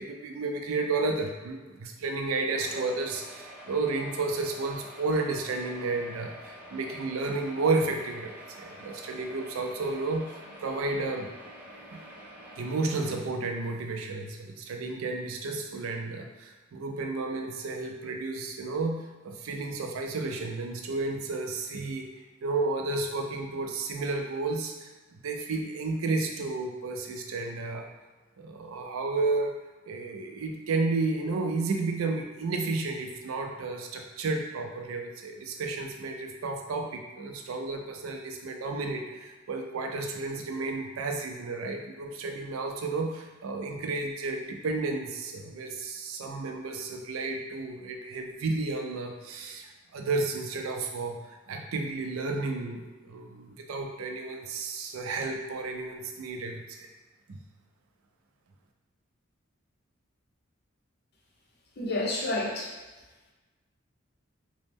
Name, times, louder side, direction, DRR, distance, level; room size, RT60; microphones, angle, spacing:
voice 1, 0.0-11.3 11.9-12.0 12.6-27.9 28.4-29.5 29.9-56.9 57.3-57.4, right 3 dB, 85° right, 3 dB, 0.4 m, -32 dB
sound 1, 2.5-13.2, equal, 10° right, 0.3 m, -47 dB
voice 2, 61.8-62.7, left 2 dB, 50° left, -1 dB, 0.5 m, -29 dB
2.9 x 2.0 x 3.4 m, 1.2 s
head